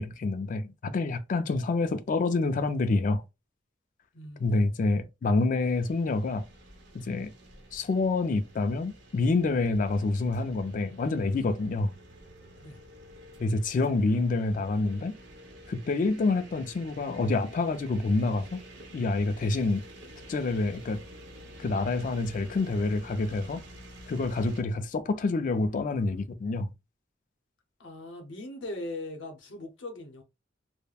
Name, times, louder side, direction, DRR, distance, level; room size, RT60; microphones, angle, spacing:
voice 1, 0.0-3.2 4.4-6.5 6.9-7.3 7.7-11.9 13.4-15.1 15.7-18.6 18.9-19.8 20.3-21.0 21.6-23.6 24.1-26.7, left 3 dB, 40° left, 0.3 m, -27 dB
voice 2, 4.1-4.6 12.6-12.8 27.8-30.2, left 2 dB, 70° left, 0.8 m, -40 dB
sound 1, 5.6-24.6, right 1 dB, 60° right, 0.8 m, -49 dB
3.3 x 2.1 x 2.3 m
head